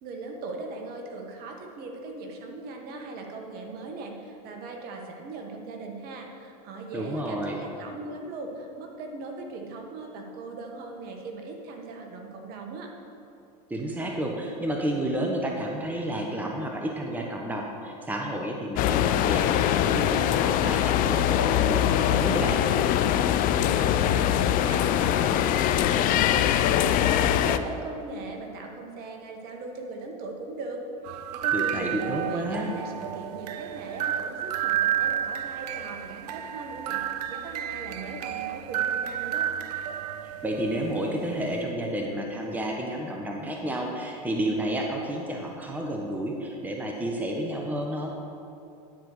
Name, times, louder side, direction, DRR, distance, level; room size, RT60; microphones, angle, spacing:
voice 1, 0.0-12.9 23.6-37.0 37.3-39.5, right 3 dB, 50° right, 2 dB, 1.4 m, -39 dB
voice 2, 6.9-7.6 13.7-22.6 31.5-32.7 40.4-48.1, right 1 dB, 10° right, 0 dB, 1.0 m, -31 dB
sound 1, 18.8-27.6, left 11 dB, 45° left, 0.4 m, -23 dB
sound 2, 31.1-41.8, right 10 dB, 80° right, 0.5 m, -31 dB
10.0 x 4.5 x 6.5 m, 2.7 s
hypercardioid pair, 100°, 20 cm